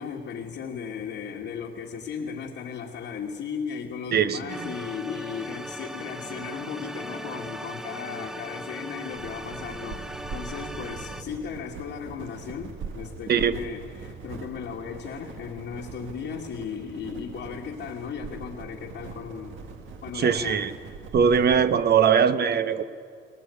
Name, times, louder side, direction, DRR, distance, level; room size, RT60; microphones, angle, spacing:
voice 1, 0.0-19.6 20.0-20.6, left 6 dB, 75° left, -3 dB, 2.0 m, -36 dB
voice 2, 4.1-4.7 13.3-13.5 20.1-20.7 21.1-22.8, right 7 dB, 55° right, 11 dB, 1.1 m, -21 dB
sound 1, 4.5-11.2, equal, ahead, 0.8 m, -38 dB
sound 2, 9.1-21.7, right 5 dB, 80° right, 1.8 m, -41 dB
20.0 x 19.5 x 8.4 m, 2.3 s
cardioid pair, 90°, 20 cm